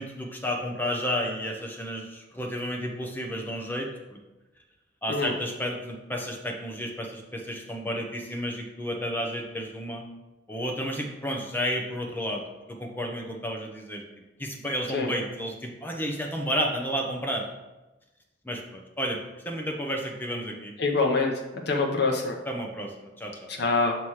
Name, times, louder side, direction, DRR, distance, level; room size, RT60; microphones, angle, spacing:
voice 1, 0.0-4.2 5.0-10.1 10.5-12.4 12.7-14.0 14.4-17.5 18.4-19.2 19.4-20.7 22.5-23.5, equal, 10° left, 1 dB, 0.7 m, -32 dB
voice 2, 20.8-21.3 21.7-22.4 23.5-23.9, left 3 dB, 55° left, 0 dB, 0.8 m, -25 dB
6.1 x 3.2 x 5.6 m, 1.1 s
head